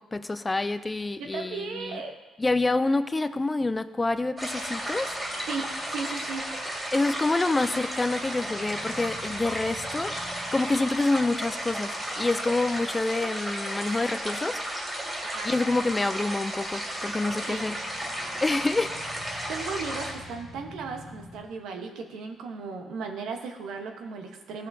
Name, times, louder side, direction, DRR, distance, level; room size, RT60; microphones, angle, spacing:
voice 1, 0.0-2.0 2.4-5.1 6.9-14.6 15.4-17.8 18.4-18.9, left 2 dB, 20° left, 12 dB, 0.4 m, -27 dB
voice 2, 1.2-2.2 5.5-5.7 5.9-6.4 15.2-15.5 17.5-17.6 19.5-24.7, right 5 dB, 85° right, 4 dB, 1.0 m, -36 dB
sound 1, 4.4-20.1, equal, 20° right, 2.4 m, -34 dB
sound 2, 4.8-14.3 14.5-21.5, left 2 dB, 40° left, 1.1 m, -50 dB
14.5 x 6.5 x 2.7 m, 1.3 s
cardioid pair, 90°, 0 cm